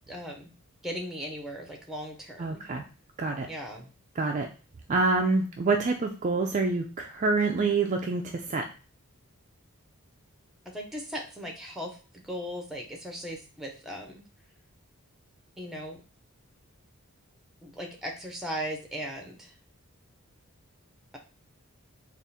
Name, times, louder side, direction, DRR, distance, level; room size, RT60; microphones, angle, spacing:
voice 1, 0.1-0.5 0.8-2.6 3.5-3.9 10.7-12.0 12.2-14.2 15.6-16.0 17.6-19.5, equal, ahead, 1 dB, 0.7 m, -37 dB
voice 2, 2.4-2.8 3.2-3.5 4.2-4.5 4.9-8.7, right 3 dB, 35° right, 3 dB, 0.3 m, -26 dB
3.6 x 2.5 x 4.0 m, 0.35 s
head